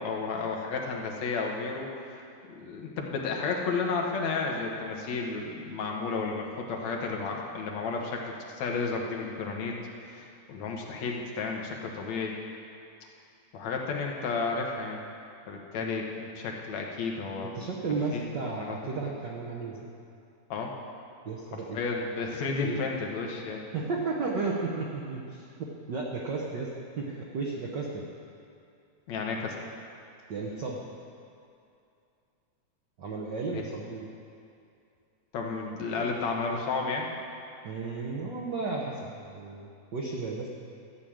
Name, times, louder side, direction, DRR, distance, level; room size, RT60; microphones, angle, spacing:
voice 1, 0.0-1.9 2.6-9.7 10.1-12.3 13.5-15.0 15.5-17.5 18.1-18.8 20.5-20.7 21.7-23.6 29.1-29.6 33.5-33.6 35.3-37.1, left 4 dB, 70° left, 0 dB, 2.4 m, -32 dB
voice 2, 17.5-19.9 21.2-21.8 22.6-22.8 23.7-25.5 25.9-26.7 27.0-28.0 30.3-30.8 33.0-34.1 37.6-40.5, right 4 dB, 80° right, -2 dB, 0.9 m, -33 dB
13.0 x 6.3 x 8.7 m, 2.5 s
omnidirectional pair, 3.5 m